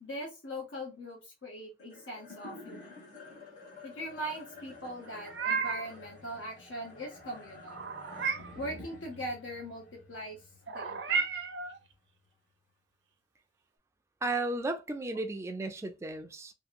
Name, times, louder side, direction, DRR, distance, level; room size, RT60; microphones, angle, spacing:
voice 1, 0.0-3.1 3.8-7.8 8.5-10.4 10.7-11.2, equal, 85° left, 0.8 m, -41 dB
sound 1, 1.8-12.3, left 3 dB, 45° left, 1.3 m, -51 dB
Meow, 5.0-6.0 7.7-8.6 10.7-11.8, right 5 dB, 65° right, 0.5 m, -33 dB
voice 2, 14.2-16.5, right 2 dB, 15° right, 0.3 m, -34 dB
2.9 x 2.6 x 2.4 m
head